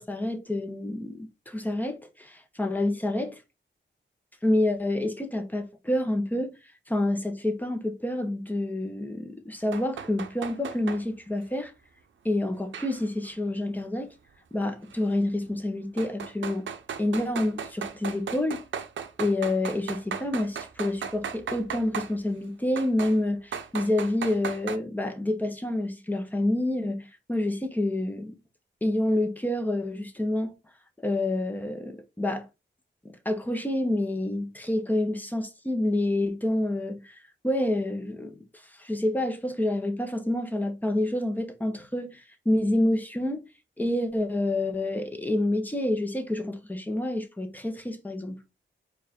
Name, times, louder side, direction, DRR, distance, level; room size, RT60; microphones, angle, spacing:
voice 1, 0.0-3.4 4.4-6.5 6.9-11.7 12.2-14.1 14.5-16.7 17.0-18.6 19.2-28.4 28.8-30.5 31.0-32.5 33.2-37.2 37.4-38.4 38.8-43.4 43.8-48.4, left 1 dB, 10° left, 0.9 m, -28 dB
sound 1, 9.7-11.0 12.7-13.3 14.9-15.0 16.0-22.1 22.8-23.2 23.5-24.8, right 7 dB, 75° right, 0.6 m, -36 dB
4.7 x 2.5 x 4.2 m
wide cardioid pair, 95°, 20 cm